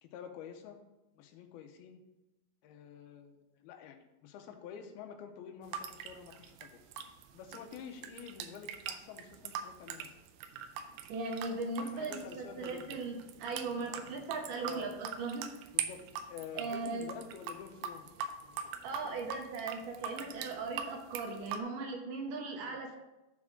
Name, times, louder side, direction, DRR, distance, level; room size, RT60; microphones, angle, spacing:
voice 1, 0.0-0.8 1.1-2.0 2.6-6.8 7.3-10.1 11.8-13.0 13.8-14.3 14.6-14.9 15.7-16.0 16.3-18.1 18.4-19.3 22.6-22.8, left 8 dB, 90° left, 4 dB, 2.7 m, -49 dB
sound 1, 5.6-21.6, right 8 dB, 90° right, 2.5 m, -42 dB
voice 2, 11.1-15.5 16.6-17.1 18.8-23.0, right 3 dB, 75° right, 2 dB, 2.2 m, -38 dB
11.0 x 4.3 x 3.7 m, 0.99 s
omnidirectional pair, 4.3 m